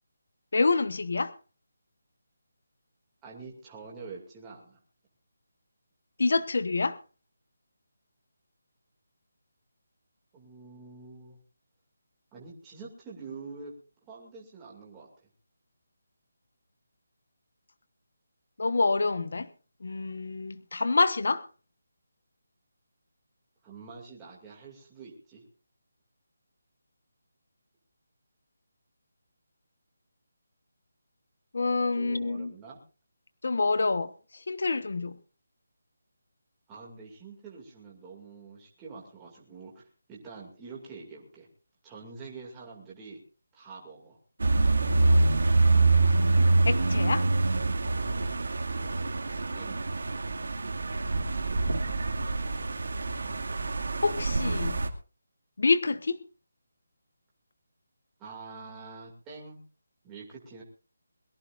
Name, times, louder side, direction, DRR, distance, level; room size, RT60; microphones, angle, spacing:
voice 1, 0.5-1.3 6.2-7.0 18.6-19.5 19.8-21.4 31.5-32.5 33.4-34.1 34.5-35.1 46.7-47.2 54.0-54.8 55.6-56.2, left 3 dB, 55° left, 1.2 m, -27 dB
voice 2, 3.2-4.8 10.3-11.4 12.3-13.7 14.1-15.1 23.6-25.4 31.9-32.8 36.7-41.5 41.8-43.2 43.5-44.2 49.5-49.8 58.2-59.6 60.0-60.6, right 4 dB, 10° right, 2.5 m, -46 dB
sound 1, 44.4-54.9, right 3 dB, 70° right, 2.2 m, -25 dB
22.5 x 15.0 x 2.6 m
hypercardioid pair, 180°, 0 cm